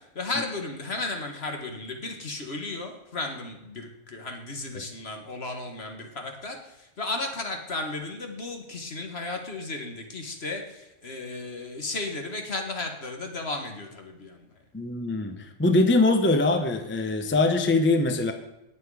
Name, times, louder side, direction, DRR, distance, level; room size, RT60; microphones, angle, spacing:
voice 1, 0.0-14.5, left 2 dB, 50° left, 3 dB, 1.8 m, -34 dB
voice 2, 14.7-18.3, left 2 dB, 10° left, 7 dB, 0.7 m, -22 dB
18.0 x 6.4 x 4.9 m, 0.90 s
omnidirectional pair, 1.4 m